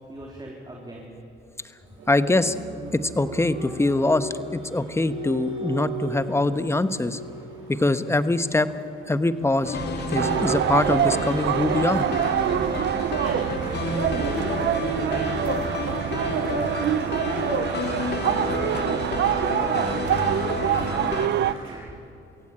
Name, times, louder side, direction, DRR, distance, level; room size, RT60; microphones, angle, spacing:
voice 1, 0.1-1.1 13.1-13.6 13.8-14.6 14.9-21.8, right 2 dB, 20° right, -1 dB, 3.4 m, -38 dB
Applause, 1.8-21.8, right 2 dB, 85° right, 7.0 m, -40 dB
voice 2, 2.1-2.5 2.9-7.2 7.7-8.7 9.1-9.8 10.1-12.1, left 2 dB, 15° left, 12 dB, 1.1 m, -23 dB
sound 1, 9.6-21.3, left 3 dB, 55° left, 2.5 m, -30 dB
sound 2, 10.2-21.5, right 11 dB, 60° right, 0.6 m, -25 dB
23.5 x 16.5 x 8.8 m, 2.8 s
cardioid pair, 90°, 20 cm